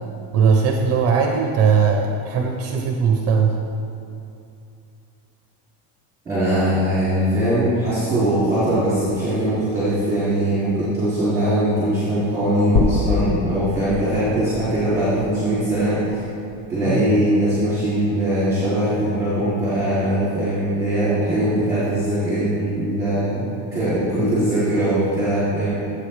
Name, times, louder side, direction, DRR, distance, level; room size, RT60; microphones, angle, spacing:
voice 1, 0.3-3.6 16.9-17.1, right 6 dB, 35° right, 2 dB, 0.7 m, -19 dB
voice 2, 6.2-16.3 16.7-23.5 23.7-25.7, right 1 dB, 5° right, -13 dB, 2.8 m, -21 dB
sound 1, 12.8-17.0, left 4 dB, 40° left, 0.8 m, -26 dB
15.5 x 8.2 x 3.3 m, 2.6 s
cardioid pair, 180°, 46 cm